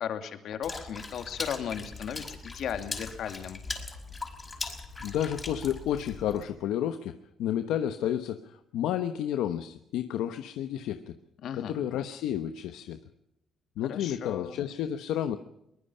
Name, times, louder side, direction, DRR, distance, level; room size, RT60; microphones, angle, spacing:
voice 1, 0.0-3.6 11.4-11.8 13.9-14.6, left 8 dB, 75° left, 8 dB, 2.5 m, -36 dB
Water / Splash splatter, 0.6-6.4, left 3 dB, 25° left, 5.4 m, -40 dB
voice 2, 5.0-11.1 11.5-13.0 13.8-15.4, left 10 dB, 90° left, 9 dB, 1.0 m, -31 dB
23.0 x 20.5 x 5.6 m, 0.84 s
cardioid pair, 90°, 0 cm